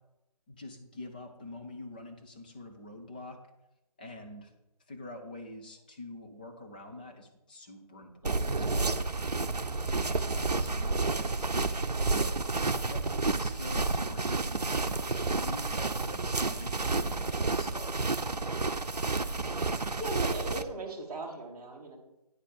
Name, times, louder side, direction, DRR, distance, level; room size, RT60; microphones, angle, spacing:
voice 1, 0.5-3.4 4.0-4.5 4.9-9.0 10.5-11.9 12.1-18.0, left 2 dB, 15° left, 2 dB, 0.5 m, -46 dB
sound 1, 8.1-11.9, right 3 dB, 45° right, 1.2 m, -44 dB
voice 2, 8.2-8.9 9.7-11.0 16.2-16.6 20.0-22.0, right 3 dB, 15° right, -5 dB, 1.4 m, -40 dB
sound 2, 8.2-20.6, right 3 dB, 90° right, 0.6 m, -30 dB
9.4 x 4.1 x 7.3 m, 0.91 s
figure-of-eight pair, 150°, 20 cm